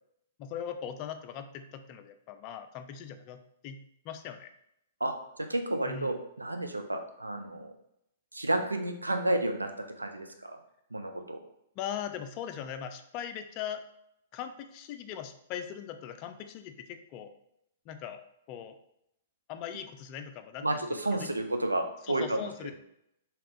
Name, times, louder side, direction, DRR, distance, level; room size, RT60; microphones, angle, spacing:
voice 1, 0.4-3.8 4.0-4.5 5.9-6.1 11.8-13.8 14.3-17.3 17.9-18.2 18.5-18.8 19.5-21.3 22.0-22.7, left 9 dB, 35° left, 8 dB, 0.4 m, -40 dB
voice 2, 5.5-7.7 8.3-9.7 10.0-10.6 10.9-11.4 20.6-22.5, right 1 dB, 85° right, 5 dB, 0.5 m, -31 dB
3.3 x 2.9 x 3.7 m, 0.77 s
figure-of-eight pair, 110°, 0 cm